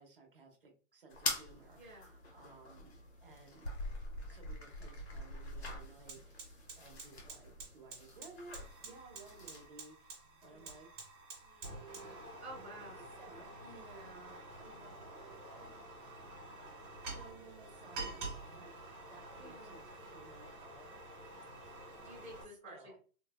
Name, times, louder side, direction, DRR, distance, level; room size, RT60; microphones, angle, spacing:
voice 1, 0.0-3.7 4.3-10.9 11.4-16.7 17.0-18.8 19.1-20.9 21.5-21.8 22.7-23.0, right 3 dB, 35° right, 1 dB, 0.7 m, -58 dB
sound 1, 1.1-9.7, left 2 dB, 45° left, 0.7 m, -44 dB
voice 2, 1.7-2.1 10.5-10.8 12.4-13.1 19.4-19.8 22.0-23.0, right 1 dB, 5° left, -16 dB, 0.7 m, -51 dB
Fire, 5.0-5.1 5.4-22.4, right 2 dB, 15° right, 1.1 m, -49 dB
3.8 x 2.1 x 2.2 m, 0.38 s
hypercardioid pair, 180°, 45 cm